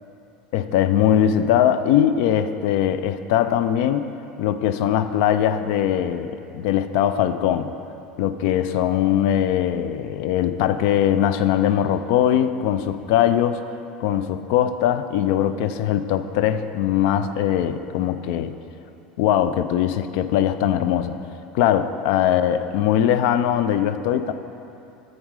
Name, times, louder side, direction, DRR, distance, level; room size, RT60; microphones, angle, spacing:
voice 1, 0.5-4.1 4.4-7.7 8.2-13.6 14.0-18.5 19.2-21.2 21.5-24.3, left 10 dB, 70° left, 11 dB, 0.4 m, -21 dB
9.0 x 6.3 x 4.8 m, 2.8 s
hypercardioid pair, 100°, 4 cm